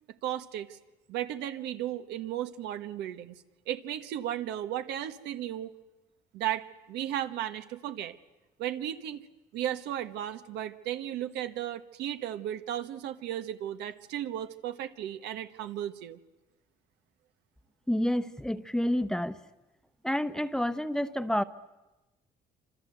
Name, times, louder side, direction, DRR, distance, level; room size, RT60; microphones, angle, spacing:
voice 1, 0.2-0.8 1.1-5.7 6.3-8.1 8.6-9.2 9.5-16.2, right 11 dB, 85° right, 9 dB, 1.4 m, -35 dB
voice 2, 17.9-19.4 20.0-21.4, equal, 5° left, 12 dB, 1.0 m, -29 dB
26.5 x 26.5 x 8.0 m, 1.1 s
cardioid pair, 110°, 17 cm